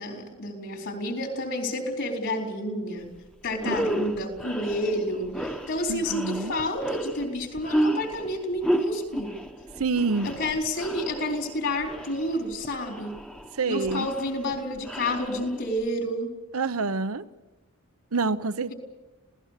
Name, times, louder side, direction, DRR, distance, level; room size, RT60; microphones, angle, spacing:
voice 1, 0.0-3.1 3.4-9.4 10.2-13.2 13.6-16.3, left 1 dB, 55° left, 4.1 m, -30 dB
sound 1, 3.0-3.2 3.5-15.9, right 1 dB, 5° left, 1.1 m, -32 dB
voice 2, 5.9-6.5 9.8-10.3 13.5-14.1 16.5-17.2 18.1-18.7, right 4 dB, 70° right, 0.9 m, -27 dB
27.0 x 17.5 x 6.7 m
head